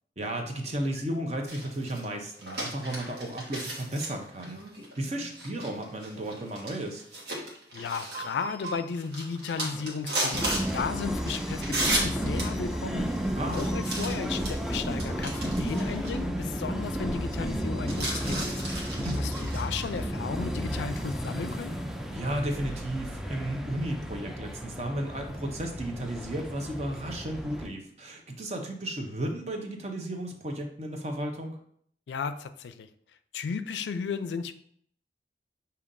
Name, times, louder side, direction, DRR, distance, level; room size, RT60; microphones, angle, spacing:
voice 1, 0.2-4.6 5.0-7.0 13.4-13.7 19.0-19.2 22.1-31.6, right 1 dB, 40° right, 3 dB, 0.6 m, -34 dB
sound 1, 1.5-16.1 16.4-16.5 17.8-20.0, right 1 dB, 70° right, 1.3 m, -35 dB
voice 2, 7.7-13.1 13.5-18.7 19.2-21.7 32.1-32.9 33.3-34.5, left 5 dB, 85° left, 11 dB, 0.3 m, -34 dB
sound 2, 10.3-27.7, equal, ahead, 0.3 m, -33 dB
6.8 x 2.8 x 2.6 m, 0.65 s
head